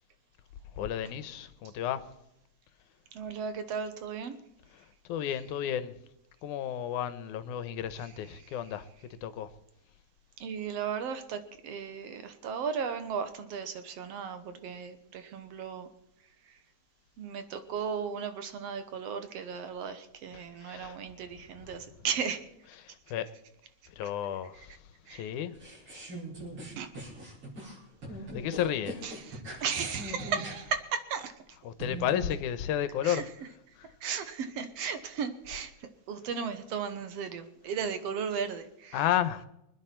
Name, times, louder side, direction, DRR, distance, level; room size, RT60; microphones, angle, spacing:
voice 1, 0.8-2.0 5.1-5.9 6.4-8.9 9.2-9.5 20.3-21.0 21.6-21.7 22.7-23.3 24.0-24.7 25.1-25.5 26.0-26.1 28.3-29.0 30.6-30.7 31.6-33.3 33.8-33.9 38.9-39.5, left 10 dB, 80° left, 2.3 m, -32 dB
voice 2, 3.1-4.4 10.4-15.9 17.2-22.4 25.1-25.3 26.8-26.9 29.0-31.3 33.0-33.2 34.0-35.7 36.1-39.0, right 6 dB, 65° right, 1.9 m, -35 dB
sound 1, 25.5-30.5 31.7-32.4, right 1 dB, 45° right, 6.3 m, -41 dB
25.0 x 10.0 x 4.5 m
omnidirectional pair, 3.5 m